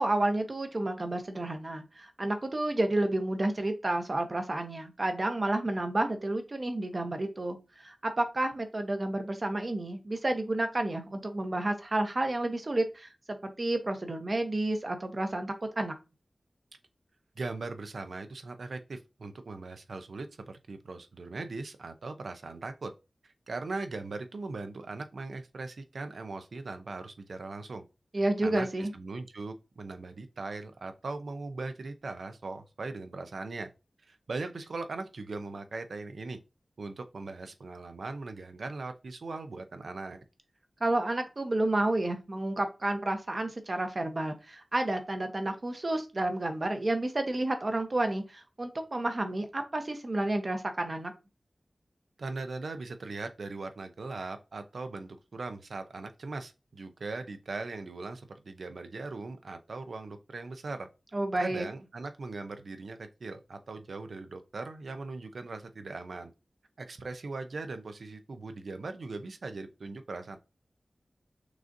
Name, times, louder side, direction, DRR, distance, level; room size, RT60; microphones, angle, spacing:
voice 1, 0.0-15.9 28.1-28.9 40.8-51.1 61.1-61.7, right 2 dB, 45° right, 0.9 m, -30 dB
voice 2, 17.4-22.9 23.2-27.8 28.4-33.7 34.1-36.4 36.8-40.2 52.2-60.9 61.4-66.3 66.8-70.4, right 3 dB, 85° right, 0.5 m, -39 dB
6.1 x 2.5 x 2.6 m
wide cardioid pair, 55°, 0 cm